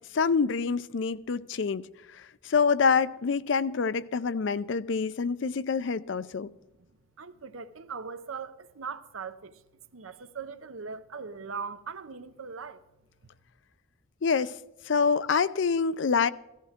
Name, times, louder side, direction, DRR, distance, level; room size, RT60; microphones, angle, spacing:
voice 1, 0.1-6.5 14.2-14.6 14.9-16.3, left 5 dB, 65° left, 0.4 m, -26 dB
voice 2, 7.2-9.6 9.9-12.8, right 5 dB, 85° right, 0.8 m, -40 dB
16.5 x 14.0 x 3.6 m
head